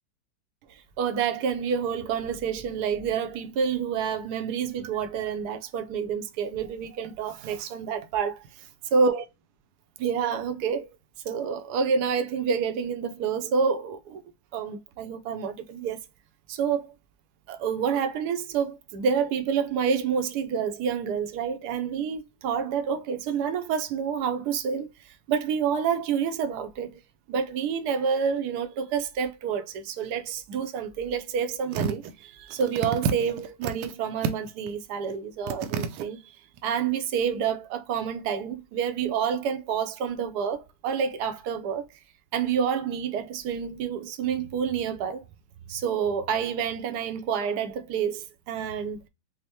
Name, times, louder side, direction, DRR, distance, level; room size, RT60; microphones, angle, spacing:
voice 1, 0.7-8.7 8.9-9.2 10.0-10.9 11.2-14.2 14.5-16.0 16.5-16.9 17.5-24.9 25.3-27.0 27.3-36.3 36.6-41.9 42.3-45.2 45.7-49.0, right 6 dB, 70° right, 0.9 m, -28 dB
sound 1, 31.7-32.1 32.5-33.9 34.2-34.7 35.1-35.2 35.5-36.0 36.6-36.7, right 6 dB, 90° right, 1.4 m, -29 dB
5.3 x 2.1 x 2.8 m
omnidirectional pair, 2.2 m